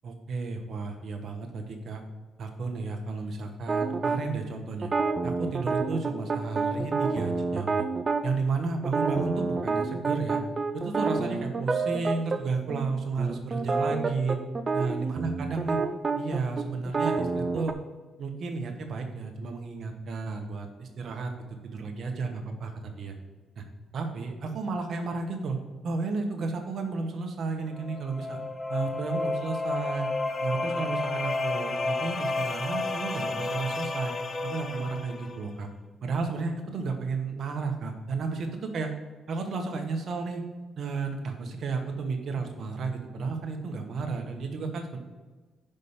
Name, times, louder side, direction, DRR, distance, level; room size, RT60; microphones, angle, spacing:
voice 1, 0.0-2.0 2.4-4.9 5.2-7.9 8.2-10.4 10.7-14.4 14.7-15.8 16.2-17.7 18.2-21.3 21.6-23.1 23.6-23.7 23.9-25.6 25.8-28.4 28.7-30.1 30.4-34.1 34.4-35.7 36.0-38.9 39.3-40.4 40.8-45.0, right 4 dB, 60° right, 4 dB, 1.3 m, -32 dB
sound 1, 3.7-4.2 4.8-8.2 8.8-12.4 12.7-12.9 13.2-17.7, right 4 dB, 35° right, 0.6 m, -28 dB
sound 2, 27.7-35.5, left 3 dB, 35° left, 0.7 m, -31 dB
5.6 x 5.2 x 6.6 m, 1.3 s
cardioid pair, 90°, 0 cm